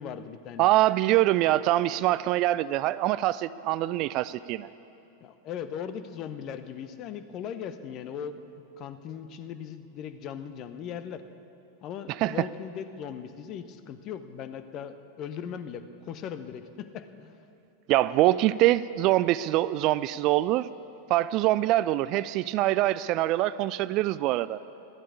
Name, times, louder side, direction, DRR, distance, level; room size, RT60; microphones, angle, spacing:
voice 1, 0.0-0.6 1.5-1.6 5.2-8.4 8.8-11.2 11.8-17.4, left 8 dB, 35° left, 11 dB, 0.9 m, -38 dB
voice 2, 0.6-4.7 12.1-12.5 17.9-20.7 21.1-24.6, right 15 dB, 40° right, 17 dB, 0.3 m, -24 dB
13.0 x 12.0 x 8.6 m, 2.7 s
figure-of-eight pair, 90°, 0 cm